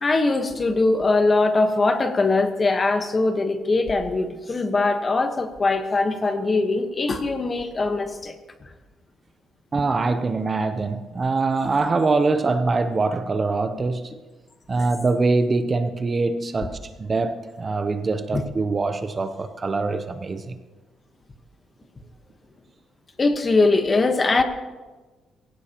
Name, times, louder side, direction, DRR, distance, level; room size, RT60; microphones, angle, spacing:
voice 1, 0.0-8.3 14.8-14.9 18.3-18.4 23.2-24.4, left 3 dB, 25° left, 1.2 m, -21 dB
voice 2, 9.7-14.1 14.7-20.6, right 3 dB, 25° right, 0.7 m, -23 dB
21.5 x 16.5 x 3.0 m
cardioid pair, 150°, 0 cm